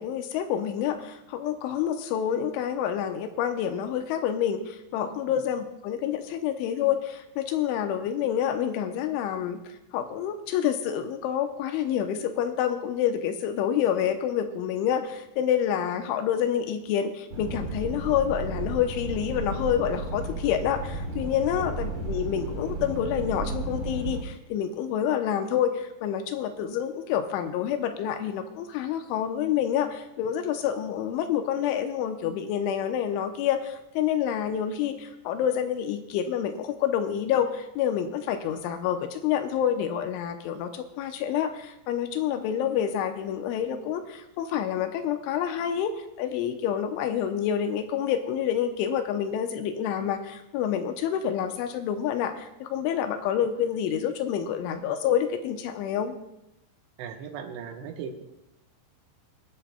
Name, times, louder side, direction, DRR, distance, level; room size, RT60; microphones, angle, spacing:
voice 1, 0.0-56.1, left 9 dB, 85° left, 6 dB, 3.2 m, -28 dB
sound 1, 17.3-24.2, right 2 dB, 45° right, 1.9 m, -33 dB
voice 2, 57.0-58.2, right 7 dB, 75° right, 4 dB, 3.0 m, -38 dB
24.0 x 10.5 x 2.2 m, 0.87 s
omnidirectional pair, 5.4 m